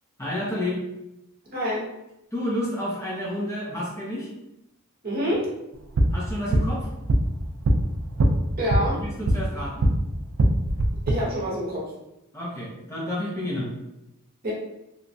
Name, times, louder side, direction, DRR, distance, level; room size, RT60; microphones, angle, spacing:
voice 1, 0.2-0.8 2.3-4.3 6.1-6.9 8.9-9.9 12.3-13.7, left 1 dB, 15° left, -6 dB, 0.5 m, -30 dB
voice 2, 1.5-1.9 5.0-5.5 8.6-9.0 11.1-11.9 14.4-14.5, equal, 45° right, -5 dB, 0.9 m, -26 dB
sound 1, 5.7-10.0 10.3-11.1, right 1 dB, 70° right, 0.4 m, -23 dB
2.9 x 2.3 x 2.6 m, 0.89 s
head